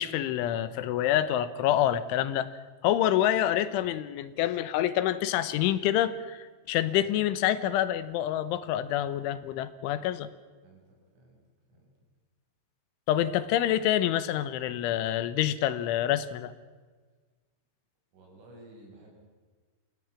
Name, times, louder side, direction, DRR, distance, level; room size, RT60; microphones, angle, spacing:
voice 1, 0.0-2.5 2.8-10.3 13.1-16.5, left 12 dB, 80° left, 14 dB, 3.3 m, -27 dB
voice 2, 10.6-11.4 11.7-11.9 18.1-19.1, right 1 dB, 80° right, -1 dB, 9.3 m, -54 dB
27.5 x 17.5 x 7.3 m, 1.4 s
omnidirectional pair, 5.6 m